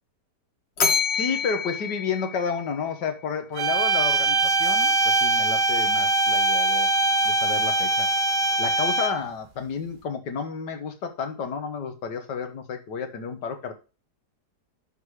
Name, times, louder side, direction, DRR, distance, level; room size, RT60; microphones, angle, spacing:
Bell, 0.8-3.1, left 5 dB, 45° left, 1.3 m, -27 dB
voice 1, 1.1-6.9 7.3-8.1 8.6-13.7, left 6 dB, 85° left, 6 dB, 1.8 m, -31 dB
sound 1, 3.6-9.3, right 2 dB, 55° right, 0.5 m, -22 dB
11.0 x 4.0 x 4.7 m, 0.33 s
omnidirectional pair, 1.8 m